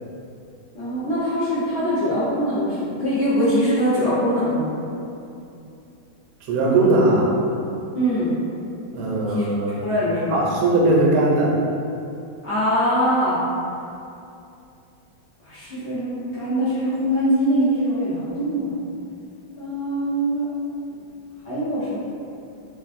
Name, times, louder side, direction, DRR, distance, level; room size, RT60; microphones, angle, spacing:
voice 1, 0.7-4.7 7.9-8.3 9.3-10.4 12.4-13.4 15.4-18.7 19.6-20.5 21.4-22.0, equal, 85° left, -14 dB, 0.5 m, -22 dB
voice 2, 6.5-7.3 8.9-9.8 10.3-11.6, right 2 dB, 75° right, -3 dB, 1.3 m, -19 dB
3.4 x 2.4 x 2.5 m, 2.7 s
omnidirectional pair, 2.3 m